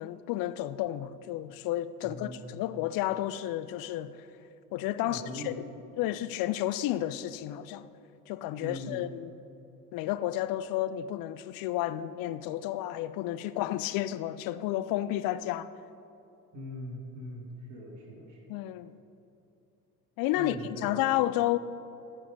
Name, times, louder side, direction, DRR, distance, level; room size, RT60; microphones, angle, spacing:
voice 1, 0.0-4.1 4.7-5.5 6.0-7.9 8.3-9.3 9.9-15.7 18.5-18.9 20.2-20.6 20.8-21.6, left 14 dB, 50° left, 0.5 m, -31 dB
voice 2, 2.0-2.6 5.0-5.6 8.6-9.1 16.5-18.5 20.3-20.9, left 1 dB, 35° right, 2.8 m, -41 dB
14.0 x 5.6 x 5.5 m
hypercardioid pair, 65°, 47 cm